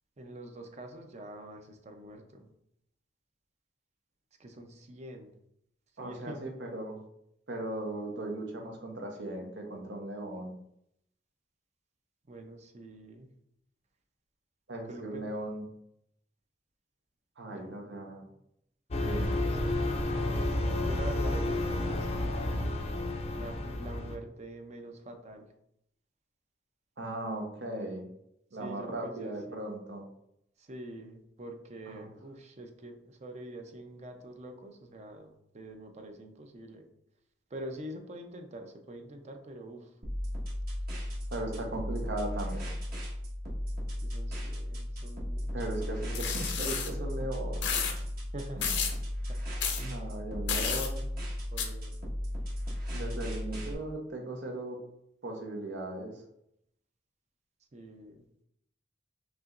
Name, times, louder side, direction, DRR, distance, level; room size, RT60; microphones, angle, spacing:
voice 1, 0.2-2.5 4.4-5.3 6.0-6.4 12.3-13.3 14.9-15.3 17.5-17.8 19.3-19.9 20.8-22.8 23.3-25.5 28.6-29.3 30.6-36.9 37.5-39.9 43.9-45.5 48.3-48.8 49.3-49.4 50.7-50.8 51.5-51.9 57.7-58.2, right 1 dB, 40° right, 5 dB, 0.6 m, -45 dB
voice 2, 6.0-7.0 7.5-10.5 14.7-15.6 17.4-18.2 19.0-19.3 27.0-28.1 28.5-30.1 31.9-32.1 41.3-42.7 45.5-47.7 48.6-48.7 49.8-51.0 52.9-54.8 55.2-56.1, right 1 dB, 75° right, 2 dB, 0.9 m, -37 dB
sound 1, 18.9-24.2, left 1 dB, 35° left, 0.5 m, -31 dB
sound 2, 40.0-53.7, left 1 dB, 60° right, 1.3 m, -35 dB
sound 3, 46.1-46.9 47.6-47.9 48.6-49.0 49.6-49.8 50.5-50.9 51.6-51.7, left 7 dB, 75° left, 0.6 m, -31 dB
5.5 x 2.9 x 2.5 m, 0.76 s
head